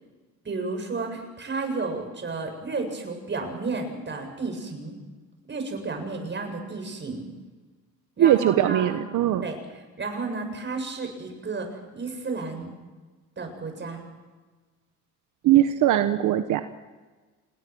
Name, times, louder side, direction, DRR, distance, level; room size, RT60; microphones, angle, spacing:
voice 1, 0.4-5.0 5.5-7.3 8.2-9.1 9.4-12.7 13.4-14.0, right 3 dB, 40° right, 4 dB, 7.4 m, -32 dB
voice 2, 8.2-9.4 15.4-16.6, right 12 dB, 85° right, 9 dB, 1.1 m, -20 dB
28.0 x 20.5 x 6.3 m, 1.3 s
cardioid pair, 90°, 30 cm